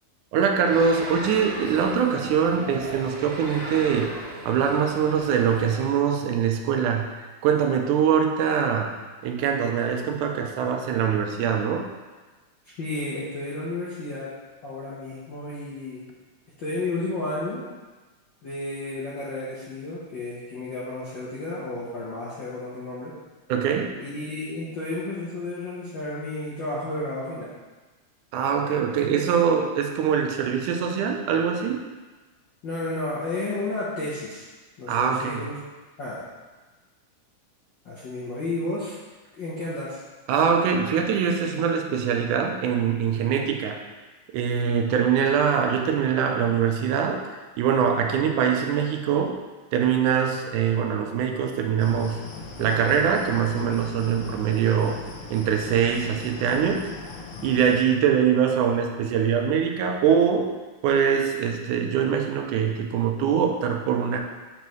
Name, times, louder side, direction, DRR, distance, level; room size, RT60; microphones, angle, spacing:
voice 1, 0.3-4.1 4.5-7.1 7.4-8.9 9.2-11.8 23.5-23.9 28.3-31.8 34.9-35.4 40.3-43.8 44.3-47.2 47.6-49.4 49.7-52.2 52.6-55.0 55.3-56.8 57.4-60.5 60.8-64.2, right 7 dB, 85° right, 3 dB, 2.2 m, -23 dB
sound 1, 0.7-5.8, right 1 dB, 45° right, 0.9 m, -37 dB
voice 2, 12.7-14.3 14.6-16.0 16.6-17.6 18.4-23.1 24.0-27.5 29.0-29.2 32.6-34.5 34.8-35.5 36.0-36.2 37.8-38.9 39.4-40.0, left 2 dB, 65° left, -8 dB, 1.2 m, -32 dB
sound 2, 51.8-57.8, left 4 dB, 85° left, 1.2 m, -39 dB
6.9 x 5.6 x 3.1 m, 1.3 s
omnidirectional pair, 3.4 m